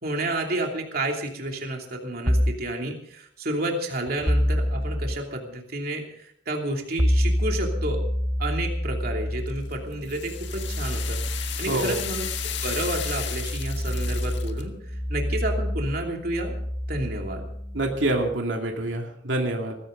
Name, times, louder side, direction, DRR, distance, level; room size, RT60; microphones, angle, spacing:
voice 1, 0.0-8.0 8.4-11.2 11.6-12.2 12.6-16.5 16.9-17.4, right 1 dB, 55° right, 1 dB, 2.9 m, -30 dB
sound 1, 2.3-2.7 4.3-5.2 7.0-18.3, equal, ahead, 0.6 m, -28 dB
sound 2, 9.5-14.6, left 10 dB, 70° left, 1.7 m, -34 dB
voice 2, 11.7-12.0 17.7-19.8, right 1 dB, 80° right, 1 dB, 2.5 m, -26 dB
19.5 x 16.0 x 3.9 m, 0.68 s
head